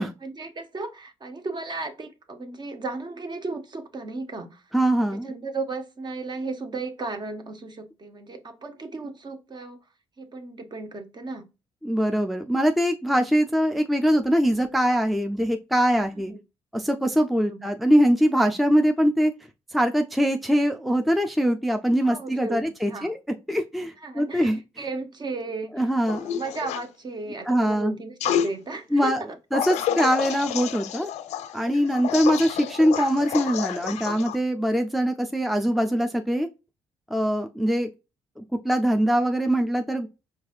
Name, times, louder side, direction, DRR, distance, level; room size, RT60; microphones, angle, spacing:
voice 1, 0.2-4.6 5.0-9.8 10.2-11.4 17.4-17.7 22.0-22.6 22.8-23.1 24.0-25.8 26.1-29.1, right 3 dB, 35° right, 0.9 m, -35 dB
voice 2, 4.7-5.3 11.8-16.3 16.7-19.3 19.7-23.2 23.5-24.6 25.8-26.2 27.5-27.9 28.9-29.2 29.5-31.1 31.5-36.5 37.1-37.9 38.4-40.1, equal, ahead, 0.5 m, -22 dB
sound 1, 26.1-26.8 28.2-28.5 29.5-34.4, left 10 dB, 65° left, 0.4 m, -29 dB
4.8 x 3.2 x 2.4 m
hypercardioid pair, 50°, 12 cm